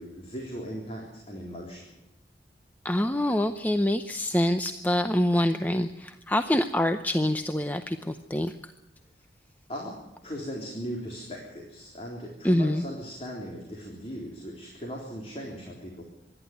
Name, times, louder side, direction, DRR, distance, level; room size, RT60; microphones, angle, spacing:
voice 1, 0.0-1.9 9.7-16.0, equal, 35° left, -1 dB, 3.7 m, -38 dB
voice 2, 2.8-8.7 12.4-12.8, left 1 dB, 10° left, 8 dB, 0.6 m, -26 dB
25.5 x 11.0 x 9.5 m, 0.95 s
head